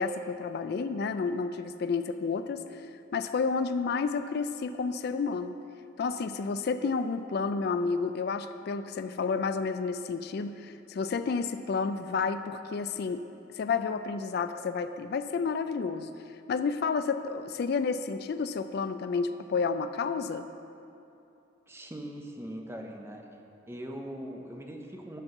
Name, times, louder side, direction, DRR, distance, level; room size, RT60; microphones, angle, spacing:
voice 1, 0.0-2.8 3.1-5.5 6.0-13.2 13.6-16.1 16.5-20.5, left 5 dB, 55° left, 9 dB, 0.3 m, -30 dB
voice 2, 21.7-23.3 23.7-25.2, equal, 15° right, 2 dB, 0.7 m, -41 dB
11.0 x 4.5 x 6.6 m, 2.8 s
head